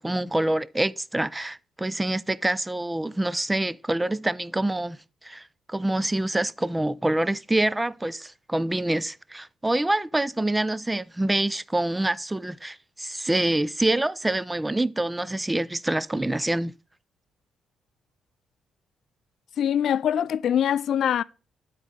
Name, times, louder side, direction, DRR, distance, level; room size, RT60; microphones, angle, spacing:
voice 1, 0.0-5.0 5.2-16.7, right 1 dB, 10° right, 0.3 m, -26 dB
voice 2, 19.6-21.2, left 9 dB, 65° left, 0.3 m, -23 dB
11.0 x 4.1 x 4.8 m
cardioid pair, 90°, 0 cm